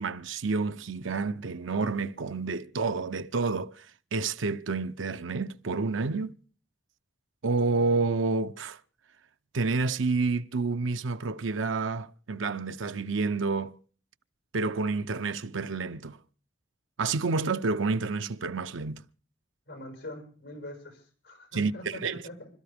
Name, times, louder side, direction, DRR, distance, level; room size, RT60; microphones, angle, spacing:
voice 1, 0.0-3.9 4.1-6.3 7.4-8.8 9.5-13.7 14.5-16.2 17.0-19.0 21.5-22.2, right 4 dB, 90° right, 0.7 m, -29 dB
voice 2, 19.7-22.5, left 1 dB, 70° left, 5.8 m, -43 dB
26.5 x 13.0 x 3.5 m
head